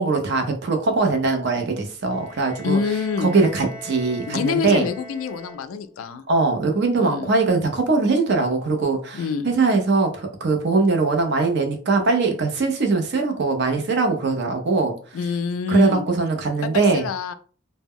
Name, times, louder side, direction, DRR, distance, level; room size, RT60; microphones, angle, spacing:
voice 1, 0.0-2.8 3.2-4.9 6.3-14.9 15.7-17.0, right 3 dB, 55° right, 5 dB, 0.5 m, -21 dB
Bowed string instrument, 2.1-6.0, equal, 5° right, 0.7 m, -41 dB
voice 2, 2.6-3.3 4.3-6.2 7.0-7.3 9.1-9.5 15.1-16.0 16.6-17.3, left 5 dB, 75° left, 11 dB, 0.3 m, -26 dB
2.1 x 2.1 x 3.5 m, 0.41 s
head